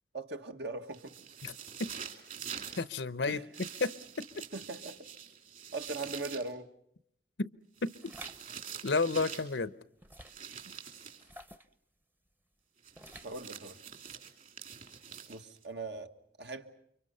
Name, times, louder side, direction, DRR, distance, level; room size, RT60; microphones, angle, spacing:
voice 1, 0.1-1.2 3.3-3.4 4.5-5.1 5.7-6.7 10.7-10.8 13.2-13.8 15.3-16.7, right 3 dB, 70° right, 1.7 m, -40 dB
sound 1, 0.9-2.9 3.5-6.5 7.8-9.6 10.2-11.3 12.8-15.6, right 8 dB, 50° right, 2.9 m, -46 dB
voice 2, 2.8-3.4 3.8-4.3 7.4-7.5 7.8-8.1 8.8-9.7, left 3 dB, 80° left, 0.9 m, -31 dB
sound 2, 8.0-8.4 10.0-10.5 11.2-11.7 12.9-13.4, right 1 dB, 10° right, 0.9 m, -50 dB
29.5 x 24.5 x 5.6 m
head